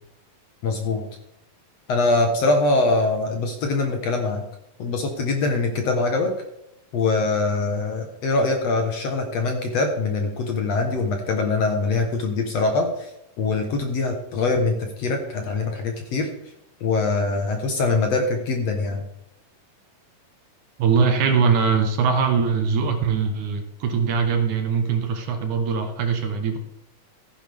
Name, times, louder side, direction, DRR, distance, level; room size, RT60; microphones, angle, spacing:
voice 1, 0.6-1.1 1.9-4.4 4.8-6.3 6.9-13.1 13.4-16.3 16.8-19.0, left 3 dB, 60° left, 4 dB, 2.0 m, -23 dB
voice 2, 20.8-26.6, right 5 dB, 70° right, 6 dB, 2.3 m, -22 dB
15.0 x 10.0 x 3.5 m, 0.81 s
omnidirectional pair, 4.0 m